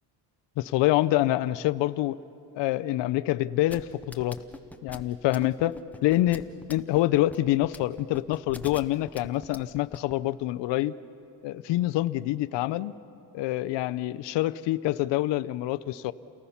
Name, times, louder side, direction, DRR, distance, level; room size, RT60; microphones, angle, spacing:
voice 1, 0.6-2.2 2.5-4.4 4.8-11.0 11.4-12.9 13.3-16.1, left 15 dB, 70° left, 14 dB, 0.6 m, -26 dB
sound 1, 3.7-10.1, left 2 dB, 5° left, 0.6 m, -42 dB
29.0 x 19.0 x 5.7 m, 2.8 s
cardioid pair, 155°, 44 cm